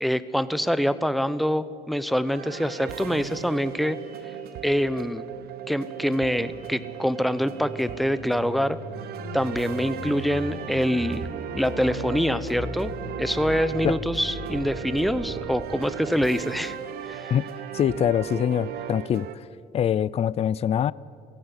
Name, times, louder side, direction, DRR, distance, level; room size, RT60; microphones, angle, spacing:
voice 1, 0.0-4.0 4.6-5.2 5.7-8.8 9.3-11.3 11.5-12.9 13.2-16.8 17.0-17.3, equal, ahead, 14 dB, 0.8 m, -25 dB
sound 1, 2.3-19.4, right 9 dB, 65° right, 1.1 m, -37 dB
sound 2, 2.8-5.2 5.8-8.6 9.3-12.1 13.6-15.5 16.1-18.2, right 4 dB, 50° right, 7.0 m, -59 dB
sound 3, 7.0-15.7, left 2 dB, 20° left, 6.7 m, -38 dB
voice 2, 17.7-19.4 19.7-20.9, left 9 dB, 40° left, 21 dB, 0.4 m, -24 dB
17.0 x 16.0 x 9.8 m, 2.3 s
cardioid pair, 110°, 17 cm